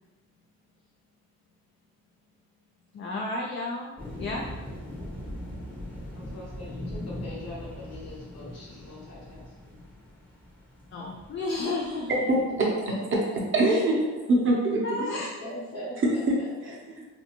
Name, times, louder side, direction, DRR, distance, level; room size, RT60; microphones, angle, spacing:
voice 1, 2.9-3.9 4.2-4.4 10.9-12.2 14.8-15.3, left 2 dB, 40° left, -1 dB, 0.4 m, -32 dB
sound 1, 4.0-12.9, left 1 dB, 5° left, 0.8 m, -40 dB
voice 2, 6.1-9.8 15.4-16.2, left 1 dB, 55° left, -6 dB, 1.3 m, -42 dB
voice 3, 12.3-12.7 13.5-14.0 14.3-15.1 16.0-17.1, right 1 dB, 40° right, -2 dB, 0.7 m, -24 dB
2.6 x 2.3 x 2.9 m, 1.1 s
cardioid pair, 90°, 30 cm